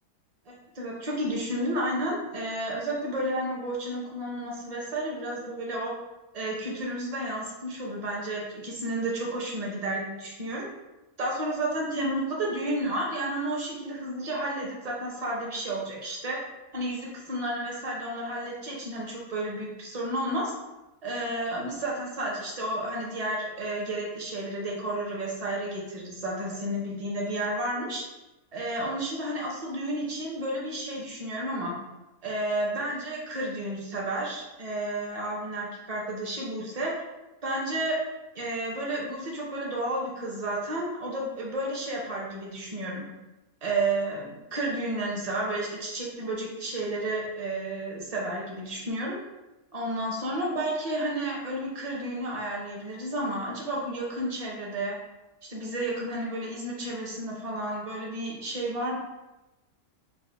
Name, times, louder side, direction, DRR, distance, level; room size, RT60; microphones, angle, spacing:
voice 1, 0.5-5.9 6.3-10.7 11.2-16.4 16.7-20.5 21.0-28.0 28.5-31.8 32.2-36.9 37.4-38.0 38.3-43.1 43.6-49.2 49.7-54.9 55.5-59.0, right 1 dB, 40° right, -3 dB, 0.6 m, -31 dB
4.0 x 2.1 x 3.3 m, 1.0 s
omnidirectional pair, 1.5 m